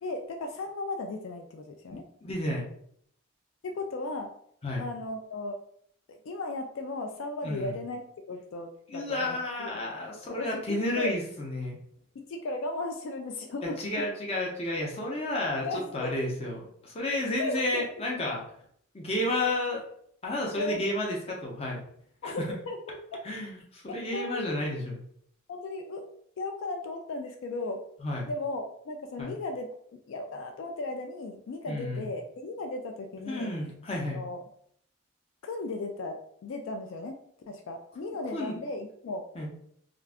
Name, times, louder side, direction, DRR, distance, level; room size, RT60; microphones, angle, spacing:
voice 1, 0.0-2.1 3.6-4.3 4.8-5.6 6.1-9.9 10.3-11.1 12.1-13.8 15.6-16.3 17.4-17.8 20.5-21.0 22.2-23.2 24.1-24.6 25.5-26.1 26.4-27.8 28.3-33.5 34.1-34.4 35.4-39.2, left 2 dB, 75° left, 5 dB, 0.3 m, -36 dB
voice 2, 1.9-2.6 4.6-4.8 7.4-7.7 8.9-11.8 13.8-16.5 16.8-18.4 18.9-19.8 20.2-21.8 22.2-22.3 23.2-25.0 28.0-28.3 29.2-29.3 31.7-32.1 33.3-34.2 38.3-38.6 39.3-39.5, left 1 dB, 30° left, -1 dB, 0.6 m, -31 dB
2.4 x 2.3 x 3.4 m, 0.66 s
head